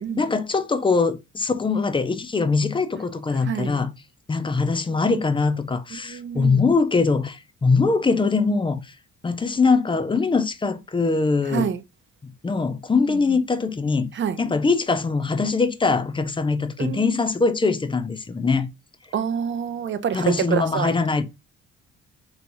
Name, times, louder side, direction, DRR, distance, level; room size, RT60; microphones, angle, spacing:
voice 1, 0.2-3.9 4.3-8.9 9.2-11.7 12.2-14.1 14.4-18.7 20.1-21.2, left 4 dB, 15° left, 0.4 m, -22 dB
voice 2, 3.5-3.8 6.1-6.6 11.5-11.8 14.2-14.4 16.8-17.0 19.1-20.9, right 8 dB, 40° right, 0.5 m, -26 dB
3.4 x 3.0 x 2.6 m
cardioid pair, 90°, 30 cm